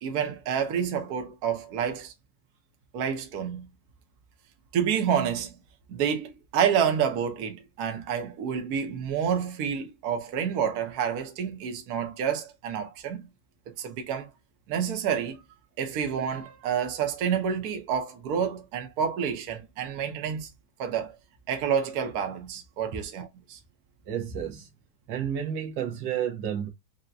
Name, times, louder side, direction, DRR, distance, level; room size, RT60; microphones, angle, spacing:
voice 1, 0.0-2.1 2.9-3.7 4.7-5.5 5.9-13.3 13.8-14.3 14.7-15.4 15.8-20.5 20.8-21.1 21.5-23.6, right 8 dB, 65° right, 1.3 m, -28 dB
voice 2, 24.1-24.7 25.1-26.7, right 9 dB, 85° right, 1.6 m, -31 dB
5.6 x 2.2 x 2.4 m
omnidirectional pair, 1.9 m